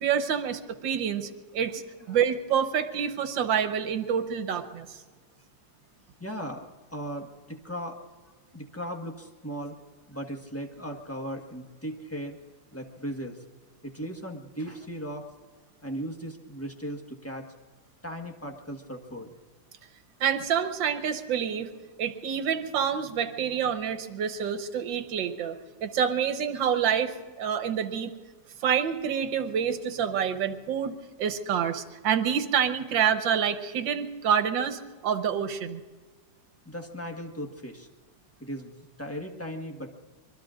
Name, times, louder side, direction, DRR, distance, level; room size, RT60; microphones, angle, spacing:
voice 1, 0.0-1.8 2.1-5.0 20.2-21.7 22.0-28.1 28.6-35.8, right 8 dB, 80° right, 8 dB, 1.7 m, -27 dB
voice 2, 6.2-8.0 8.5-9.7 10.1-12.4 12.7-13.4 13.8-15.3 15.8-17.5 18.0-19.3 36.6-37.9 38.4-39.9, equal, 10° left, 2 dB, 1.3 m, -37 dB
25.5 x 22.5 x 2.5 m, 1.4 s
omnidirectional pair, 2.0 m